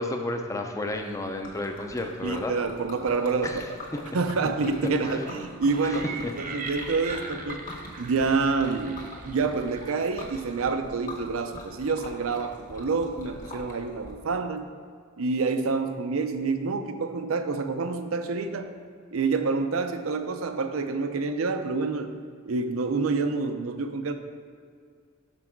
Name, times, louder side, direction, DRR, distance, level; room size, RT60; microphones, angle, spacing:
voice 1, 0.0-2.5 3.4-3.7 3.9-4.0 5.1-5.2 5.8-6.3, left 1 dB, 15° left, 4 dB, 0.4 m, -32 dB
Liquid, 0.9-14.1, left 1 dB, 40° left, 1.3 m, -44 dB
voice 2, 2.2-3.5 4.1-7.6 8.0-14.7 15.2-18.7 19.1-22.1 22.5-24.1, right 4 dB, 85° right, 8 dB, 0.5 m, -27 dB
sound 1, 5.7-10.5, right 4 dB, 40° right, 0.6 m, -40 dB
6.1 x 6.0 x 4.4 m, 2.1 s
head